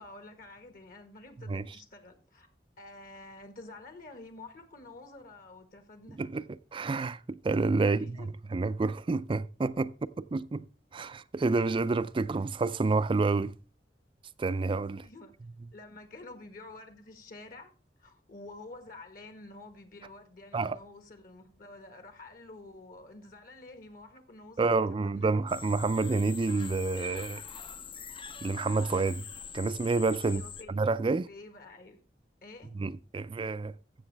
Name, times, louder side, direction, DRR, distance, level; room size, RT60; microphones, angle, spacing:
voice 1, 0.0-2.5 2.8-6.2 7.9-8.3 15.0-15.3 15.7-17.7 18.0-25.3 30.2-30.7 31.3-32.0 32.4-32.7, left 2 dB, 55° left, 1.5 m, -49 dB
voice 2, 6.2-9.9 10.2-10.6 10.9-13.5 14.4-15.1 20.5-20.8 24.6-27.4 28.4-29.3 29.5-30.4 30.7-31.3 32.7-33.7, right 3 dB, 30° right, 0.4 m, -29 dB
sound 1, 25.5-30.6, left 6 dB, 30° left, 0.5 m, -44 dB
14.5 x 6.9 x 3.3 m
head